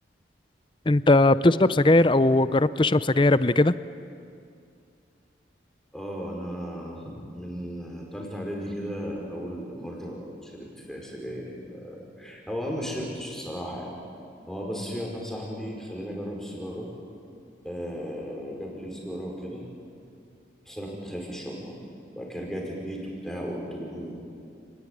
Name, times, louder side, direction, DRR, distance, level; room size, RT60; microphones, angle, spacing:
voice 1, 0.9-3.7, left 2 dB, 25° left, 15 dB, 0.6 m, -19 dB
voice 2, 5.9-14.0 14.5-16.9 17.6-19.6 20.6-21.7 22.1-24.2, equal, 5° left, -1 dB, 5.0 m, -35 dB
30.0 x 20.0 x 10.0 m, 2.4 s
head